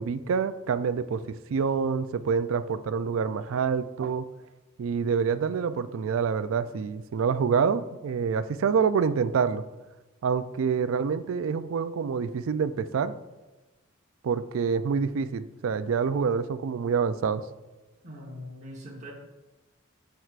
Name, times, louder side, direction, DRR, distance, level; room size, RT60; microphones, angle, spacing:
voice 1, 0.0-4.3 4.8-9.6 10.2-13.1 14.2-17.4, right 6 dB, 75° right, 14 dB, 0.4 m, -27 dB
voice 2, 18.0-19.1, equal, 35° right, -2 dB, 1.1 m, -41 dB
12.5 x 4.5 x 2.5 m, 1.1 s
head